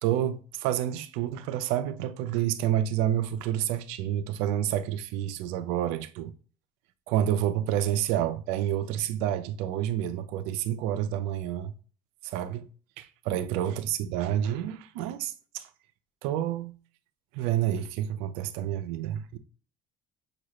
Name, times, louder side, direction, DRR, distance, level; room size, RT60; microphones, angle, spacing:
voice 1, 0.0-6.3 7.1-11.7 12.2-12.7 13.0-15.7 16.2-16.7 17.3-19.4, right 11 dB, 85° right, 0.6 m, -29 dB
6.2 x 2.4 x 3.1 m
supercardioid pair, 95°, 10 cm